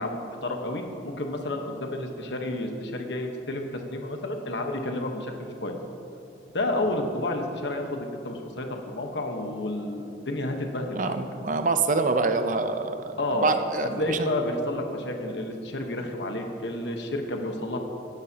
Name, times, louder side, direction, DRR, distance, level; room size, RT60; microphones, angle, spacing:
voice 1, 0.0-5.8 6.5-11.2 13.2-13.5 14.0-17.8, left 1 dB, 75° left, 3 dB, 1.1 m, -30 dB
voice 2, 10.9-14.3, right 3 dB, 45° right, 8 dB, 0.6 m, -26 dB
16.5 x 10.5 x 2.8 m, 2.7 s
head